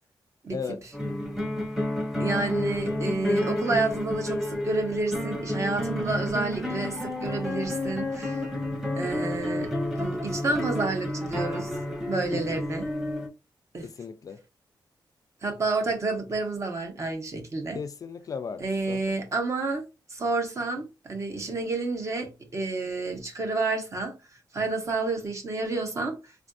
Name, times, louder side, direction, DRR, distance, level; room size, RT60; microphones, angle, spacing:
sound 1, 0.9-13.3, left 1 dB, 5° right, 0.7 m, -30 dB
voice 1, 2.2-8.4 9.0-9.7 10.0-11.7 12.1-12.9 13.7-13.9 15.4-17.8 18.6-19.8 20.1-24.2 24.5-26.2, right 3 dB, 40° right, 0.8 m, -29 dB
voice 2, 13.8-14.4 17.7-19.0, left 5 dB, 45° left, 0.3 m, -36 dB
3.5 x 2.5 x 2.3 m
wide cardioid pair, 170°, 8 cm